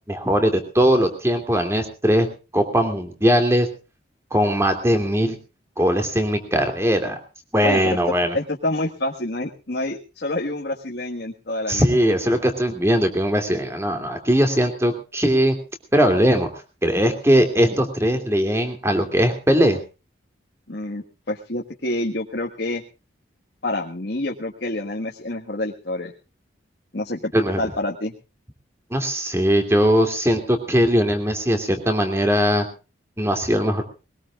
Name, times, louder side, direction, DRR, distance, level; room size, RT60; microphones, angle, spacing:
voice 1, 0.1-2.3 2.5-3.7 4.3-5.4 5.8-7.1 7.5-8.4 11.7-15.6 15.9-16.5 16.8-19.8 27.3-27.6 28.9-32.6 33.2-33.8, equal, 15° right, 6 dB, 2.7 m, -20 dB
voice 2, 7.6-11.8 20.7-22.8 23.6-26.1 26.9-27.3 27.6-28.1, left 1 dB, 65° left, -1 dB, 1.6 m, -27 dB
21.5 x 19.5 x 2.4 m, 0.32 s
head